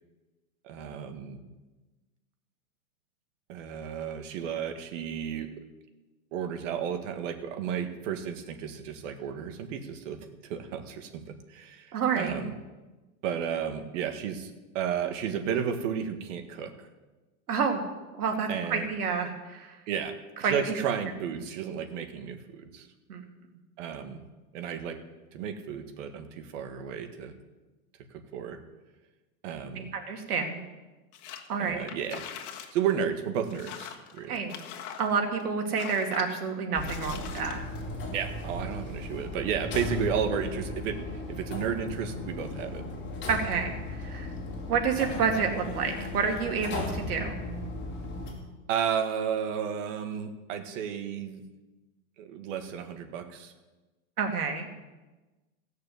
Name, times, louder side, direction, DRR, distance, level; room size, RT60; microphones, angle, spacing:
voice 1, 0.6-1.4 3.5-5.6 6.3-12.5 13.2-16.7 18.5-18.9 19.9-20.1 20.4-22.9 23.8-24.2 24.5-25.0 25.3-27.3 28.3-28.6 29.4-29.9 31.6-32.2 32.7-34.4 38.1-42.8 48.7-51.4 52.2-53.5, right 8 dB, 55° right, 6 dB, 1.8 m, -33 dB
voice 2, 11.9-12.4 17.5-17.8 18.1-19.8 20.4-20.7 23.1-23.2 29.9-30.7 31.5-31.9 34.3-34.5 35.0-37.6 43.3-44.3 44.7-47.3 54.2-54.7, right 5 dB, 85° right, 3 dB, 2.6 m, -29 dB
sound 1, 31.1-31.5 31.8-32.7 33.0-33.1 33.5-35.4 35.7-36.3 36.8-37.8, left 9 dB, 55° left, 1.7 m, -42 dB
sound 2, 36.7-48.3, left 2 dB, 25° left, 3.2 m, -36 dB
16.5 x 6.6 x 7.9 m, 1.2 s
hypercardioid pair, 140°, 44 cm